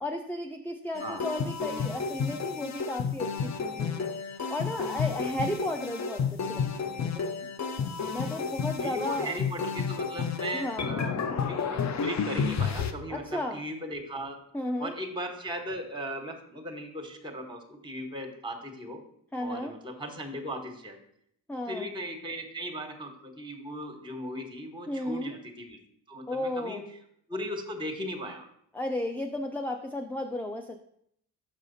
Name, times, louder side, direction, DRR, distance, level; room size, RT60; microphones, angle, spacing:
voice 1, 0.0-4.1 4.5-7.5 8.1-9.3 10.5-11.0 13.1-13.6 14.5-14.9 19.3-19.7 21.5-21.9 24.9-25.3 26.3-26.9 28.7-30.8, left 1 dB, 5° left, 5 dB, 0.5 m, -34 dB
sound 1, 1.0-12.9, left 6 dB, 45° left, 0.7 m, -31 dB
voice 2, 8.8-14.4 14.8-19.0 19.4-21.0 21.7-25.8 26.1-26.9 27.3-28.5, equal, 10° right, 4 dB, 1.4 m, -37 dB
6.4 x 4.8 x 4.1 m, 0.71 s
supercardioid pair, 50°, 40 cm